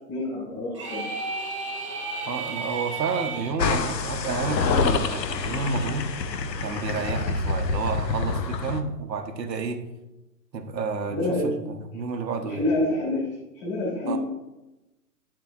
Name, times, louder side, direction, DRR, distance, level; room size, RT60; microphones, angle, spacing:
voice 1, 0.1-1.1 11.1-11.7 12.4-13.3 13.6-14.2, left 1 dB, 20° left, -4 dB, 2.7 m, -27 dB
sound 1, 0.7-3.5, right 3 dB, 20° right, 0.5 m, -33 dB
voice 2, 2.3-6.1 6.6-9.8 10.5-12.6 14.1-14.2, right 4 dB, 90° right, 5 dB, 1.0 m, -30 dB
sound 2, 3.6-8.8, left 4 dB, 85° left, 0.8 m, -27 dB
9.3 x 7.5 x 2.4 m, 1.0 s
hypercardioid pair, 145°, 49 cm